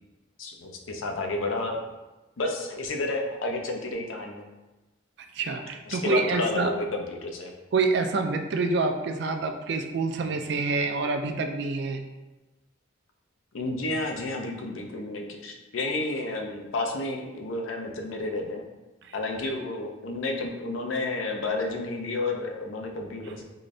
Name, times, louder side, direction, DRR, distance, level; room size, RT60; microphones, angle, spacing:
voice 1, 0.4-1.8 2.4-4.4 5.9-7.5 13.5-18.6 19.1-23.4, left 2 dB, 80° left, 2 dB, 0.5 m, -31 dB
voice 2, 5.3-6.8 7.7-12.0 19.0-19.1, right 3 dB, 55° right, 5 dB, 0.3 m, -27 dB
3.8 x 2.5 x 3.2 m, 1.1 s
head